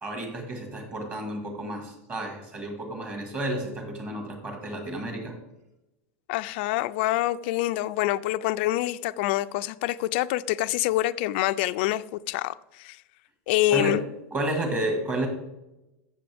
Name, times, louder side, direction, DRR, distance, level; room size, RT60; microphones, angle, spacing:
voice 1, 0.0-5.4 13.7-14.0 14.3-15.3, right 1 dB, 20° right, 1.9 m, -31 dB
voice 2, 6.3-13.0 13.5-14.0, left 15 dB, 50° left, 0.4 m, -26 dB
14.5 x 6.6 x 3.5 m
supercardioid pair, 175°, 8 cm